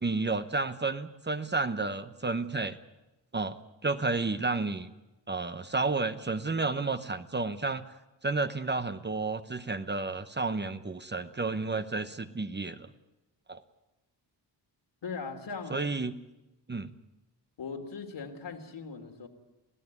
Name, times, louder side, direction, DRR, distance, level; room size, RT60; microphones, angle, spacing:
voice 1, 0.0-2.8 3.3-4.9 5.3-7.8 8.2-12.9 13.5-13.6 15.7-16.1 16.7-16.9, right 3 dB, 25° right, 10 dB, 0.9 m, -31 dB
voice 2, 15.0-15.8 17.6-19.3, left 5 dB, 75° left, 4 dB, 3.1 m, -39 dB
27.0 x 16.5 x 9.6 m, 0.99 s
wide cardioid pair, 150°, 43 cm